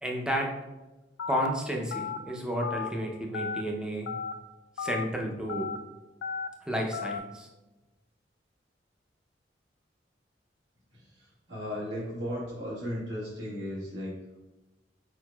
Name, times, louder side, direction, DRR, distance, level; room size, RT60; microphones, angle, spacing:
voice 1, 0.0-0.5 1.3-4.1 4.8-5.7 6.7-7.5, equal, 5° right, -1 dB, 0.6 m, -31 dB
Telephone, 1.2-1.5 1.9-2.2 2.6-2.9 3.3-3.6 4.1-4.3 4.8-5.0 5.5-5.8 6.2-6.5 6.9-7.2, left 6 dB, 65° left, 0.3 m, -34 dB
voice 2, 10.9-14.4, equal, 90° right, -8 dB, 1.4 m, -36 dB
4.7 x 4.6 x 2.3 m, 1.1 s
head